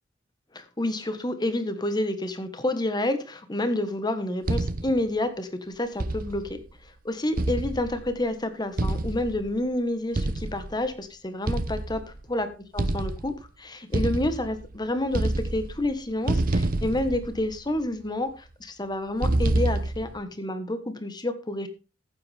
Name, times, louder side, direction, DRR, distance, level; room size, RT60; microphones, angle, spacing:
voice 1, 0.5-6.6 7.0-12.0 12.3-12.5 12.7-21.7, left 1 dB, 25° left, 9 dB, 1.4 m, -29 dB
sound 1, 4.5-5.1 6.0-6.6 7.4-8.2 8.8-9.5 10.1-10.8 11.5-12.2 12.8-13.5 13.9-14.8 15.1-15.9 16.3-17.8 19.2-20.2, right 2 dB, 50° right, 0.8 m, -27 dB
14.5 x 7.9 x 3.5 m, 0.31 s
head